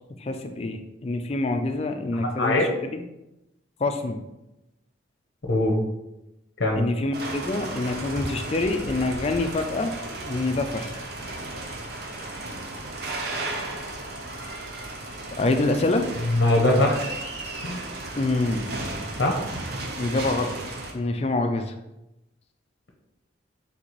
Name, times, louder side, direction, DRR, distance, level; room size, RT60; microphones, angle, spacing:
voice 1, 0.2-3.0 3.8-4.2 6.7-9.9 10.3-11.0 15.4-16.1 18.2-18.7 20.0-20.6 20.9-21.7, left 2 dB, 30° left, 6 dB, 0.4 m, -26 dB
voice 2, 2.1-2.7 5.5-5.8 6.6-6.8 16.3-17.1 17.6-17.8 19.2-19.3, left 1 dB, 60° left, 0 dB, 0.7 m, -22 dB
sound 1, 7.1-20.9, right 2 dB, 55° right, 0.6 m, -34 dB
4.1 x 3.6 x 3.0 m, 0.93 s
head